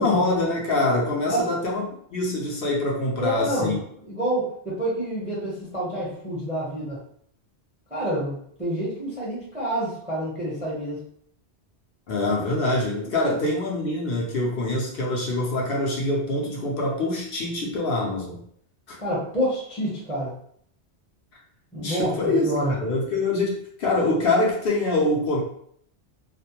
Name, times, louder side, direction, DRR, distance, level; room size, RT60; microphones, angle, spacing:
voice 1, 0.0-1.8 2.1-3.8 12.1-18.4 18.9-19.0 21.8-25.4, left 2 dB, 60° left, -2 dB, 0.8 m, -24 dB
voice 2, 3.2-7.0 7.9-11.0 13.2-13.3 19.0-20.3 21.7-22.1 22.4-22.7, right 1 dB, 10° right, -6 dB, 0.7 m, -28 dB
2.4 x 2.1 x 2.8 m, 0.64 s
omnidirectional pair, 1.2 m